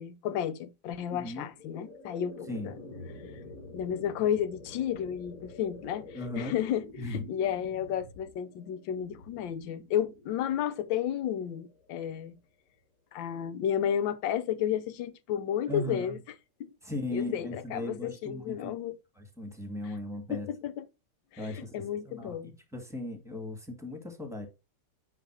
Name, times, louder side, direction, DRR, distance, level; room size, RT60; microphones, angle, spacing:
voice 1, 0.0-2.7 3.7-6.0 6.4-6.8 7.1-12.3 13.1-16.2 16.6-16.7 17.1-19.0 20.3-20.8 21.4-22.5, left 9 dB, 85° left, 1.5 m, -32 dB
voice 2, 1.1-1.5 2.5-2.7 6.1-6.6 7.0-7.2 15.7-16.2 16.8-18.7 19.2-20.5 21.4-24.5, left 1 dB, ahead, 1.7 m, -37 dB
sound 1, 1.3-12.4, left 3 dB, 50° left, 2.0 m, -48 dB
9.3 x 3.3 x 6.1 m
omnidirectional pair, 2.0 m